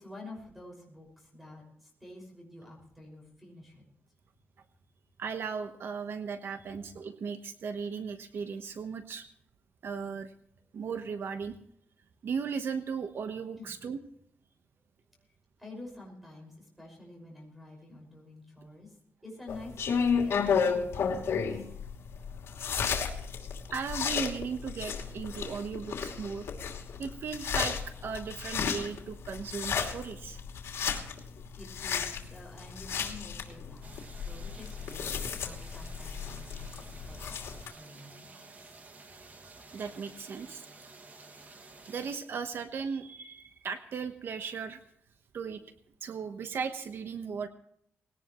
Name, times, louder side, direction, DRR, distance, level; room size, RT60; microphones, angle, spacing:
voice 1, 0.0-3.8 13.5-13.7 15.6-19.0 19.2-20.4 20.6-21.7 31.2-38.7 41.1-41.2, left 2 dB, ahead, -1 dB, 5.7 m, -49 dB
voice 2, 5.2-9.3 9.8-10.3 10.7-11.6 12.2-14.0 23.7-26.5 27.0-27.8 28.0-30.4 39.7-40.7 41.9-44.8 45.3-45.6 46.0-47.5, right 6 dB, 60° right, 8 dB, 1.1 m, -36 dB
sound 1, 19.5-37.7, left 6 dB, 80° left, 2.7 m, -33 dB
sound 2, 33.8-42.2, right 3 dB, 40° right, 2.2 m, -52 dB
20.0 x 18.0 x 3.1 m, 0.69 s
wide cardioid pair, 155°, 4 cm